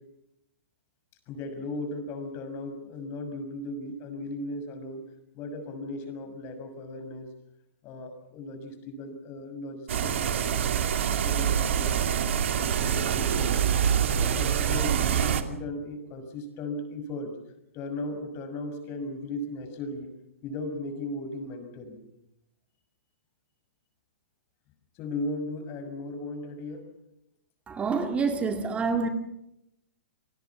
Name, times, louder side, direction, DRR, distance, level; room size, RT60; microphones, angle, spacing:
voice 1, 1.3-5.0 5.3-7.3 7.8-10.7 11.0-12.1 12.5-13.6 14.1-17.3 17.7-20.1 20.4-22.0 24.9-26.9, left 2 dB, 35° left, 8 dB, 6.4 m, -37 dB
sound 1, 9.9-15.4, right 8 dB, 65° right, 2.5 m, -25 dB
voice 2, 27.7-29.1, right 4 dB, 15° right, 5 dB, 2.1 m, -27 dB
29.0 x 20.0 x 7.3 m, 0.84 s
hypercardioid pair, 120°, 7 cm